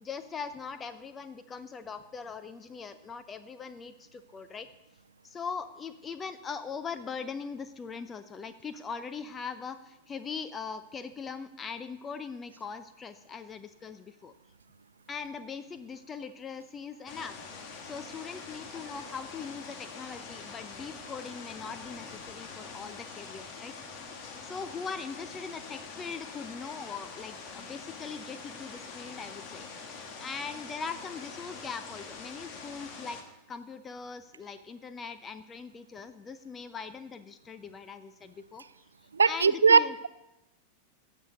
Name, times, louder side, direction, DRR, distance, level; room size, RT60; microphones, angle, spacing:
voice 1, 0.0-4.7 5.2-14.3 15.1-24.0 24.4-33.2 33.5-38.6 39.2-39.9, left 5 dB, 20° left, 11 dB, 0.5 m, -41 dB
sound 1, 17.1-33.2, left 5 dB, 40° left, 1.5 m, -44 dB
voice 2, 39.1-40.1, right 5 dB, 75° right, 17 dB, 0.3 m, -21 dB
17.0 x 6.5 x 4.0 m, 0.91 s
figure-of-eight pair, 90°, 0 cm